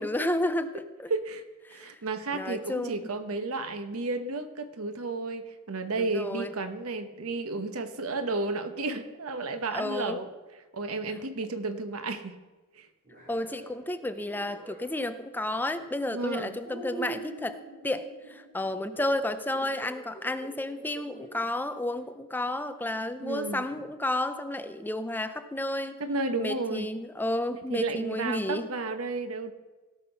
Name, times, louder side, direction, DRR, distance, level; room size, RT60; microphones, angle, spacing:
voice 1, 0.0-1.1 1.7-1.9 2.3-3.0 6.0-6.5 9.7-10.2 13.3-17.6 17.8-26.0 26.4-28.7, left 1 dB, 10° left, 11 dB, 0.5 m, -31 dB
voice 2, 1.1-1.4 1.7-10.3 10.7-12.4 12.8-12.9 16.1-16.6 23.2-23.6 26.0-26.9 27.7-29.5, right 3 dB, 85° right, 9 dB, 1.0 m, -32 dB
sound 1, 13.0-15.0 15.8-16.1 16.6-21.3 22.0-22.1 23.7-23.9, right 3 dB, 40° right, 3.7 m, -44 dB
17.0 x 5.9 x 5.6 m, 1.2 s
head